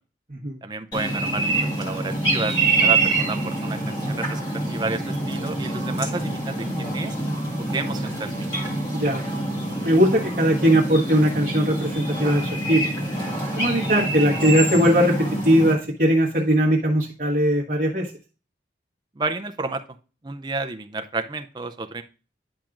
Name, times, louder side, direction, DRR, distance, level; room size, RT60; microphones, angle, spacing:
voice 1, 0.6-4.4 4.7-7.2 7.7-8.5 19.2-19.8 20.2-22.0, right 3 dB, 25° right, 8 dB, 0.5 m, -31 dB
sound 1, 0.9-15.7, right 2 dB, 20° left, 1.7 m, -26 dB
voice 2, 9.8-12.9 13.6-18.1, equal, 40° right, -6 dB, 1.2 m, -20 dB
10.5 x 5.8 x 2.5 m, 0.36 s
head